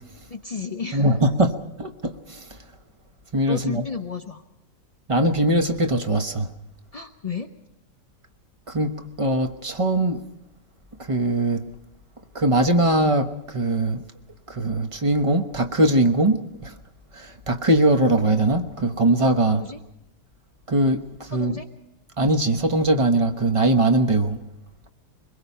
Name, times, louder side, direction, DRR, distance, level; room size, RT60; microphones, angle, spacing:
voice 1, 0.3-1.1 3.5-4.4 6.9-7.5 19.5-19.8 21.3-21.7, left 5 dB, 40° left, 0.5 m, -32 dB
voice 2, 0.9-2.4 3.3-3.8 5.1-6.5 8.7-10.2 11.0-11.6 12.3-14.0 14.5-16.7 17.1-19.6 20.7-21.6 22.2-24.4, right 1 dB, 25° right, 0.9 m, -21 dB
23.5 x 21.5 x 5.6 m
omnidirectional pair, 1.8 m